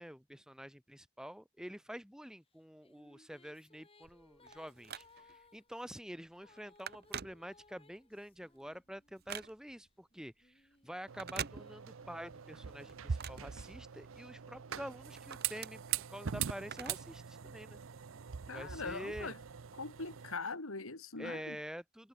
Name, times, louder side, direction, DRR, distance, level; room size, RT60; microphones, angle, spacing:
voice 1, 0.0-17.8 18.5-19.3 21.2-22.1, equal, 5° right, 3.7 m, -47 dB
Female singing, 2.5-9.4 10.1-13.9, left 2 dB, 25° left, 7.3 m, -66 dB
Telephone, 4.0-5.5 6.0-6.2 6.4-7.9 8.3-9.9 11.0-12.2 12.5-14.2 14.7-17.2 17.5-17.6 18.5-18.6, right 8 dB, 45° right, 0.9 m, -46 dB
sound 1, 11.1-20.3, right 8 dB, 70° right, 0.6 m, -42 dB
voice 2, 18.5-19.3 19.8-21.6, left 3 dB, 85° left, 2.6 m, -41 dB
head